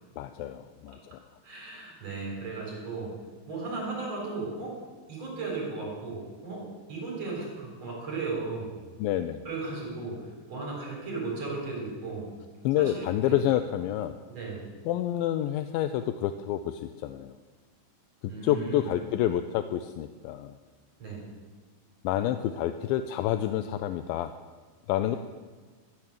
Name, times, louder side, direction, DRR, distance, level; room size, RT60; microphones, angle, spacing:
voice 1, 0.2-1.2 9.0-9.5 12.6-14.2 14.9-17.4 18.4-20.5 22.0-24.3 24.9-25.2, left 12 dB, 85° left, 9 dB, 2.3 m, -28 dB
voice 2, 1.4-3.1 3.5-4.7 5.1-6.6 6.9-8.8 9.4-10.2 10.5-12.3 12.8-13.3 14.3-14.7 18.3-18.9 21.0-21.3, right 3 dB, 45° right, -3 dB, 4.8 m, -35 dB
13.0 x 10.5 x 6.6 m, 1.4 s
omnidirectional pair, 4.1 m